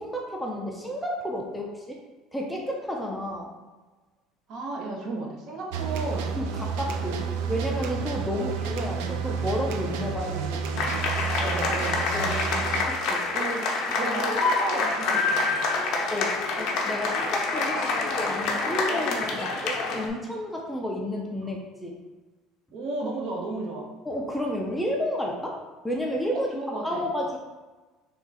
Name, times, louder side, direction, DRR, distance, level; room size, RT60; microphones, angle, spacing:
voice 1, 0.0-2.0 2.3-3.5 6.3-10.6 12.1-12.5 12.9-13.2 13.9-14.0 16.1-22.0 24.0-25.6 25.8-26.5 26.8-27.4, equal, 5° left, -1 dB, 0.5 m, -31 dB
voice 2, 4.5-6.3 8.4-8.5 11.3-12.2 13.3-13.6 13.9-15.7 22.7-23.9 26.3-27.0, right 2 dB, 55° right, -1 dB, 0.8 m, -34 dB
sound 1, 5.7-12.8, right 6 dB, 85° right, 0.3 m, -30 dB
sound 2, 10.8-20.1, left 3 dB, 55° left, 0.6 m, -27 dB
3.6 x 2.4 x 4.0 m, 1.2 s
cardioid pair, 140°, 0 cm